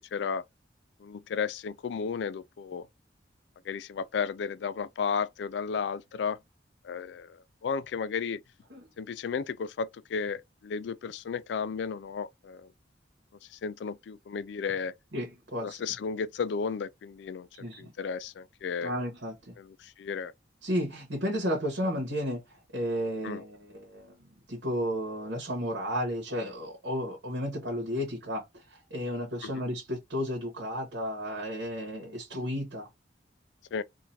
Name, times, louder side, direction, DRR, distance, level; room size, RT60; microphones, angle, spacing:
voice 1, 0.1-0.4 1.0-2.9 3.6-6.4 6.8-8.4 9.0-12.7 13.5-14.9 15.6-17.5 17.8-18.9 19.6-20.3 23.2-23.4 29.4-29.6 33.7-33.8, left 6 dB, 70° left, 0.3 m, -33 dB
voice 2, 15.1-15.8 17.6-17.9 18.8-19.5 20.6-22.4 22.7-24.1 24.5-32.9, equal, 90° right, 1.3 m, -33 dB
3.8 x 2.5 x 2.7 m
head